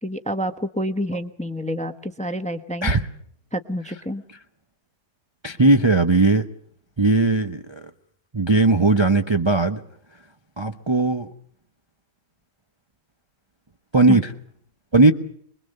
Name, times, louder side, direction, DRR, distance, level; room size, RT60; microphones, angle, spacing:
voice 1, 0.0-2.9 3.5-4.2 14.1-14.2, equal, 5° left, 9 dB, 0.9 m, -28 dB
voice 2, 5.4-6.4 7.0-7.9 8.3-9.8 10.6-11.3 13.9-14.3 14.9-15.1, right 2 dB, 20° right, 6 dB, 0.8 m, -18 dB
24.5 x 22.0 x 6.6 m, 0.64 s
omnidirectional pair, 1.8 m